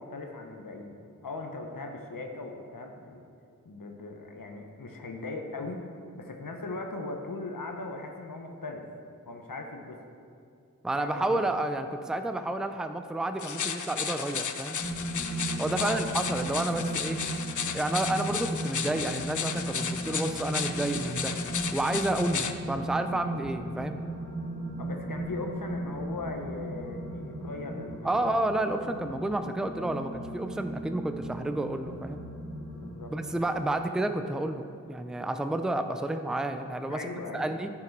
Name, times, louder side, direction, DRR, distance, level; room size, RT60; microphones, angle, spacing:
voice 1, 0.0-3.2 3.7-5.9 6.1-8.9 9.3-10.0 11.0-11.5 15.7-16.1 24.8-28.3 32.7-33.1 36.9-37.5, left 2 dB, 80° left, 3 dB, 0.9 m, -39 dB
voice 2, 10.8-14.8 15.6-17.2 17.7-21.3 21.7-24.0 28.0-32.2 33.1-37.0 37.3-37.7, right 1 dB, ahead, 8 dB, 0.5 m, -30 dB
sound 1, 13.4-22.5, left 7 dB, 65° left, 0.5 m, -34 dB
sound 2, 14.8-33.7, right 1 dB, 35° left, 2.0 m, -36 dB
10.5 x 6.0 x 4.6 m, 2.4 s
wide cardioid pair, 45°, 33 cm